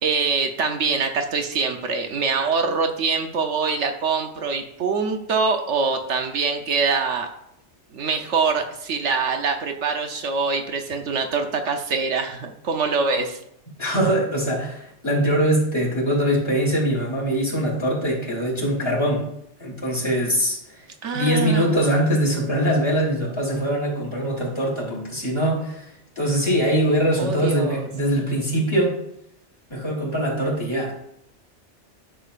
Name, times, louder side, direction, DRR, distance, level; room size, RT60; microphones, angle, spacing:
voice 1, 0.0-7.3 7.9-13.4 21.0-22.0 27.2-27.9, right 4 dB, 80° right, 5 dB, 1.2 m, -24 dB
voice 2, 13.8-19.3 19.6-20.8 21.1-25.9 26.2-29.0 29.7-31.0, right 1 dB, 25° left, -4 dB, 2.7 m, -22 dB
10.0 x 7.2 x 2.5 m, 0.76 s
omnidirectional pair, 1.2 m